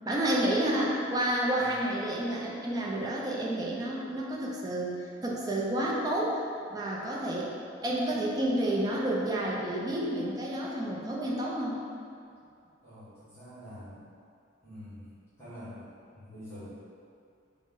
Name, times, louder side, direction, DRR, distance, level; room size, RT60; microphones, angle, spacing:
voice 1, 0.1-6.4 6.7-7.5 7.8-11.8, right 1 dB, 20° right, -4 dB, 0.4 m, -30 dB
voice 2, 12.8-14.1 14.6-15.1 15.4-16.6, equal, 15° left, -15 dB, 1.0 m, -46 dB
3.9 x 2.0 x 3.7 m, 2.4 s
head